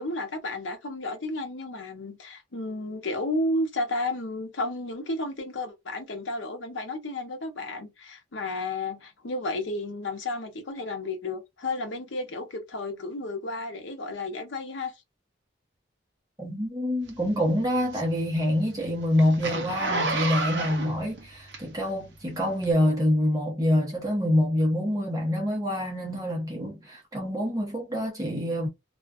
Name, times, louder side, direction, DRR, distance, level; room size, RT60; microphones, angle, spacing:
voice 1, 0.0-14.9, left 2 dB, 75° left, 0.7 m, -32 dB
voice 2, 16.4-28.7, left 1 dB, 20° right, 0.8 m, -26 dB
Zipper (clothing), 17.1-22.0 22.6-22.7, right 3 dB, 65° right, 0.7 m, -31 dB
2.4 x 2.3 x 2.3 m
head